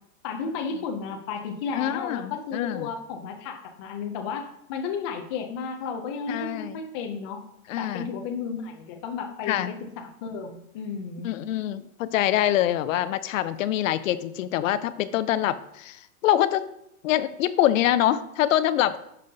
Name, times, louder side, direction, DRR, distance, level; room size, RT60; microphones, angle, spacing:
voice 1, 0.2-7.4 7.7-11.3, left 5 dB, 20° left, 4 dB, 0.3 m, -33 dB
voice 2, 1.7-2.9 6.3-6.8 7.7-8.1 9.5-9.7 11.2-16.6 17.0-19.0, left 12 dB, 60° left, 14 dB, 0.6 m, -25 dB
10.5 x 5.4 x 2.7 m, 0.79 s
hypercardioid pair, 140°, 44 cm